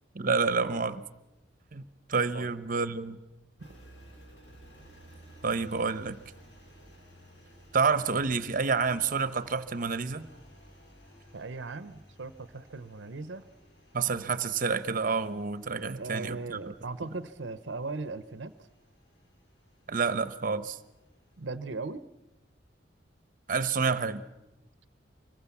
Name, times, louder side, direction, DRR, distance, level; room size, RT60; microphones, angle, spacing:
voice 1, 0.1-1.0 1.7-1.8 2.1-3.2 5.4-6.2 7.7-10.3 13.9-16.7 19.9-20.8 23.5-24.2, right 5 dB, 50° right, 14 dB, 1.0 m, -28 dB
Engine, 3.6-21.5, equal, 70° left, 5.6 m, -56 dB
voice 2, 11.3-13.4 15.9-18.5 21.4-22.0, right 3 dB, 90° right, 14 dB, 0.8 m, -38 dB
25.0 x 21.0 x 7.2 m, 0.96 s
head